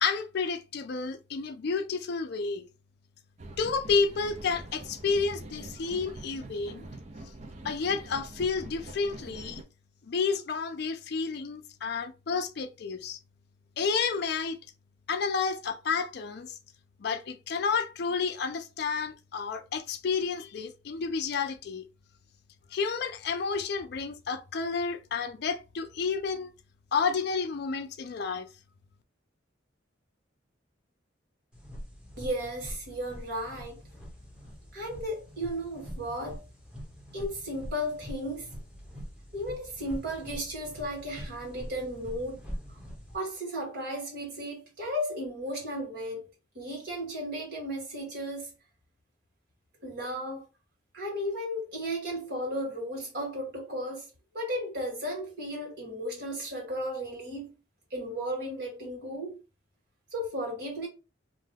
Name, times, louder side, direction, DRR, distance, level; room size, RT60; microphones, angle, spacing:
voice 1, 0.0-2.7 3.6-6.8 7.6-9.6 10.0-13.2 13.8-14.6 15.1-16.6 17.0-21.8 22.7-26.5 26.9-28.5, left 5 dB, 60° left, 0.4 m, -30 dB
sound 1, 3.4-9.6, right 2 dB, 35° right, 0.4 m, -44 dB
sound 2, 31.5-43.2, equal, 5° right, 1.0 m, -44 dB
voice 2, 32.2-33.8 34.7-36.4 37.1-38.5 39.3-42.4 42.7-42.8 43.1-46.3 46.5-48.5 49.8-50.4 50.9-54.1 54.3-57.6 57.9-59.4 60.1-60.9, equal, 55° right, 1.6 m, -35 dB
2.6 x 2.3 x 3.3 m
head